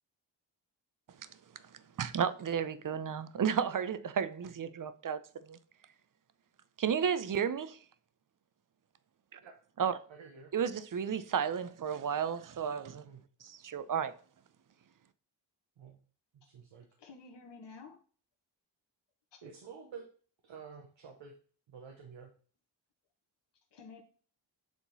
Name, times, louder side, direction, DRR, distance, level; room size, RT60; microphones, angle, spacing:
voice 1, 2.0-5.6 6.8-7.8 9.3-9.4 9.8-10.0 10.5-13.0 13.4-14.1, right 7 dB, 45° right, 0.7 m, -33 dB
voice 2, 10.1-10.5 13.0-13.2 15.8-16.0 16.3-16.9 19.4-20.1 20.4-21.4 21.7-22.3, right 6 dB, 85° right, 1.1 m, -50 dB
voice 3, 17.0-18.0 19.3-19.4 23.7-24.0, left 4 dB, 65° left, 1.3 m, -51 dB
7.3 x 3.8 x 4.1 m
cardioid pair, 45°, 44 cm